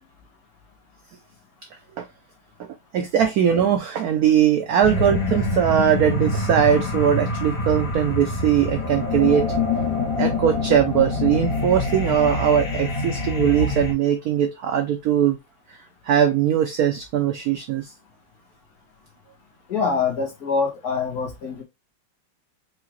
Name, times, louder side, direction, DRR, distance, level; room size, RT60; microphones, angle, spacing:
voice 1, 2.9-9.5 10.2-15.4 15.7-15.8 16.0-17.9, right 9 dB, 75° right, 0.8 m, -20 dB
sound 1, 4.8-13.9, left 3 dB, 70° left, 2.4 m, -25 dB
voice 2, 19.7-21.6, left 5 dB, 55° left, 1.7 m, -24 dB
4.8 x 2.8 x 3.0 m
omnidirectional pair, 2.1 m